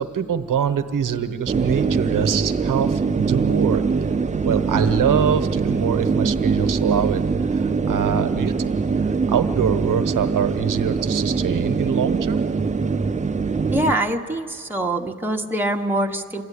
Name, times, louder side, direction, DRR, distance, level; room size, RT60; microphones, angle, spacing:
voice 1, 0.0-3.8 4.4-12.4, right 7 dB, 80° right, 9 dB, 1.0 m, -24 dB
sound 1, 1.5-13.9, right 5 dB, 25° right, 0.5 m, -22 dB
voice 2, 13.7-16.4, right 1 dB, 5° right, 1 dB, 1.1 m, -24 dB
27.5 x 14.0 x 10.0 m, 2.4 s
wide cardioid pair, 135°, 32 cm